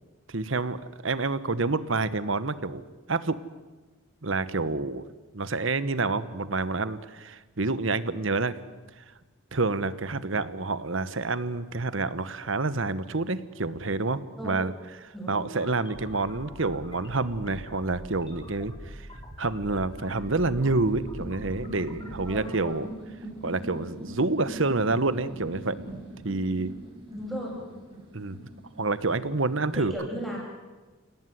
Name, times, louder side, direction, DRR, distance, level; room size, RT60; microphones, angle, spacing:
voice 1, 0.3-2.8 3.1-3.4 4.2-5.0 5.3-8.6 9.0-9.1 9.5-14.7 15.0-19.1 19.4-22.9 23.4-25.8 26.2-26.7 28.1-28.5 28.8-29.9, right 3 dB, 70° right, 14 dB, 1.2 m, -28 dB
voice 2, 14.1-14.8 15.1-15.4 22.2-22.8 27.1-27.6 29.7-30.4, right 1 dB, ahead, -3 dB, 7.4 m, -36 dB
sound 1, 15.4-22.5, equal, 25° left, 4.1 m, -43 dB
sound 2, 19.8-29.9, right 1 dB, 25° right, 6.2 m, -43 dB
29.5 x 17.5 x 9.5 m, 1.3 s
head